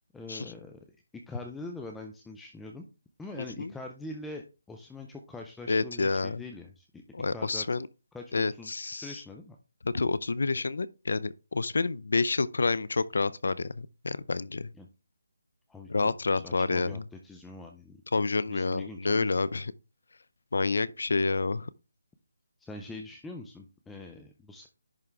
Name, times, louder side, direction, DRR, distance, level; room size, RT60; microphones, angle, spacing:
voice 1, 0.1-0.8 1.3-2.8 3.2-7.0 7.3-7.7 8.1-9.6 14.7-14.9 15.7-18.0 18.5-19.3 22.6-24.7, left 2 dB, 5° left, 0.4 m, -43 dB
voice 2, 3.4-3.7 5.7-6.4 7.1-7.9 8.3-9.2 9.8-14.7 15.9-17.0 18.1-19.7 20.5-21.7, left 3 dB, 75° left, 0.5 m, -29 dB
10.5 x 3.6 x 3.3 m
hypercardioid pair, 170°, 0 cm